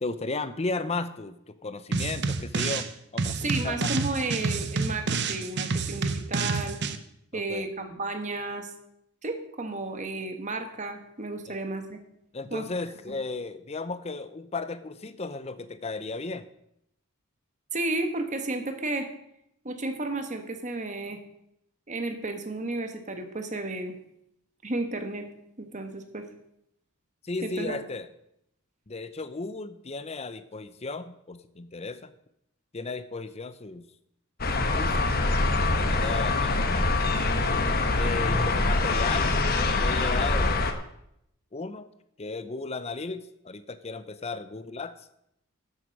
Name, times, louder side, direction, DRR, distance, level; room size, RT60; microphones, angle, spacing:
voice 1, 0.0-2.9 3.1-3.9 7.3-7.7 11.5-11.6 12.3-16.5 27.2-28.1 28.9-32.1 32.7-33.8 34.7-35.1 35.8-36.7 38.0-40.8 41.5-41.9 42.2-45.1, left 3 dB, 30° left, 13 dB, 0.7 m, -35 dB
sound 1, 1.9-2.9 3.2-7.0, right 4 dB, 50° right, 0.8 m, -29 dB
voice 2, 3.4-6.8 7.3-8.7 9.2-12.0 12.5-12.6 13.1-13.2 17.7-19.1 19.6-21.2 21.9-23.9 24.6-25.2 25.6-26.3 27.4-27.8, right 2 dB, 35° right, 6 dB, 1.4 m, -32 dB
sound 2, 34.4-40.7, left 2 dB, 45° left, 1.1 m, -24 dB
12.5 x 7.8 x 5.3 m, 0.77 s
head